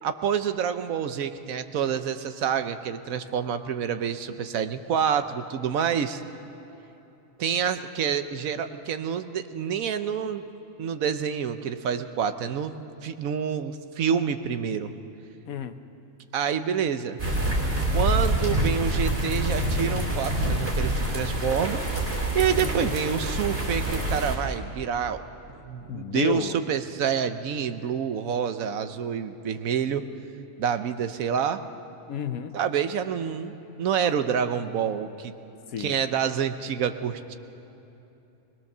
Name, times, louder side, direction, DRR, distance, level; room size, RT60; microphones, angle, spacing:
voice 1, 0.0-6.2 7.4-10.4 10.8-12.7 13.0-14.9 16.3-17.2 17.9-21.8 22.3-25.2 25.5-30.0 30.6-31.6 32.5-35.3 35.8-37.4, right 7 dB, 75° right, 10 dB, 1.2 m, -27 dB
voice 2, 15.5-15.8 22.6-22.9 25.9-26.6 32.1-32.5 35.7-35.9, left 9 dB, 85° left, 10 dB, 1.3 m, -32 dB
sound 1, 17.2-24.4, right 1 dB, 45° right, 3.5 m, -26 dB
22.0 x 20.5 x 6.7 m, 2.9 s
omnidirectional pair, 1.4 m